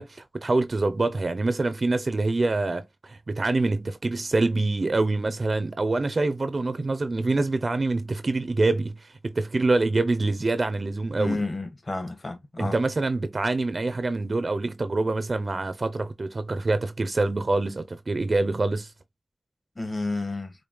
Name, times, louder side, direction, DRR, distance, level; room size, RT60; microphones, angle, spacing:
voice 1, 0.0-11.4 12.6-18.9, right 2 dB, 50° right, 0.5 m, -25 dB
voice 2, 11.2-12.7 19.8-20.5, left 2 dB, 40° left, 1.4 m, -30 dB
4.9 x 2.2 x 3.1 m
wide cardioid pair, 85°, 0 cm